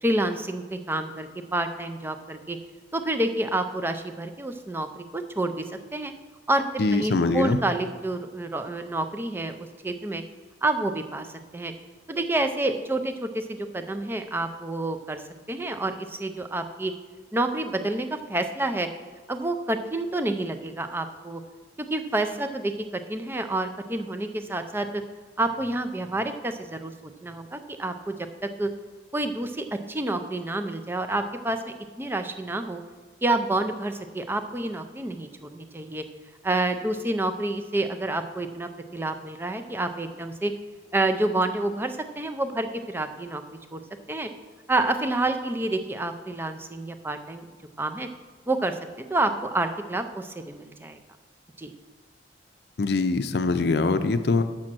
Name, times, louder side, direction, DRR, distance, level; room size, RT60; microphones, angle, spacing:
voice 1, 0.0-2.6 2.9-5.6 5.9-6.1 6.5-10.2 10.6-11.3 11.5-11.7 12.1-15.2 15.5-16.9 17.3-18.9 19.3-21.4 21.8-25.0 25.4-26.9 27.2-28.7 29.1-32.8 33.2-36.0 36.4-40.5 40.9-43.4 43.7-43.8 44.1-44.3 44.7-47.5 47.8-48.1 48.5-48.8 49.1-51.0 51.6-51.7, right 2 dB, 10° right, 7 dB, 0.4 m, -28 dB
voice 2, 6.8-7.6 52.8-54.4, left 3 dB, 60° left, 10 dB, 0.5 m, -23 dB
7.4 x 6.3 x 6.0 m, 1.4 s
head